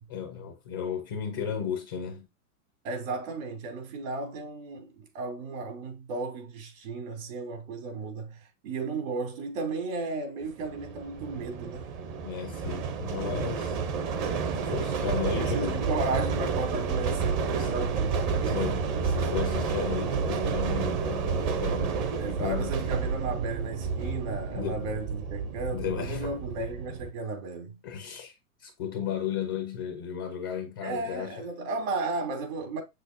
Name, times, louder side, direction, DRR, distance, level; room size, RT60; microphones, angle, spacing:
voice 1, 0.1-2.3 12.2-13.8 14.5-15.9 17.6-17.7 18.4-22.7 24.5-24.9 25.7-26.3 27.8-28.3 28.6-31.4, left 8 dB, 15° left, 0.4 m, -34 dB
voice 2, 2.8-11.8 15.2-18.7 19.2-19.3 22.2-27.8 30.8-32.8, right 3 dB, 55° right, 3.3 m, -34 dB
sound 1, 10.6-27.1, right 5 dB, 30° right, 0.8 m, -30 dB
7.9 x 6.6 x 2.7 m
supercardioid pair, 170°, 46 cm